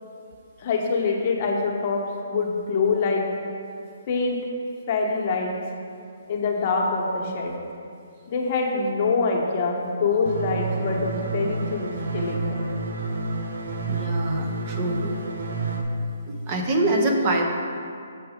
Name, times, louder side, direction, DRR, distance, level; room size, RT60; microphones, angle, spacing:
voice 1, 0.6-3.3 4.1-4.4 4.9-5.6 6.3-7.6 8.3-12.6, left 4 dB, 40° left, 0 dB, 0.9 m, -25 dB
sound 1, 10.3-15.8, right 2 dB, 70° right, 0.8 m, -29 dB
voice 2, 13.9-15.1 16.3-17.4, right 2 dB, 30° right, 2 dB, 0.7 m, -25 dB
7.0 x 4.7 x 5.1 m, 2.4 s
hypercardioid pair, 155°, 0 cm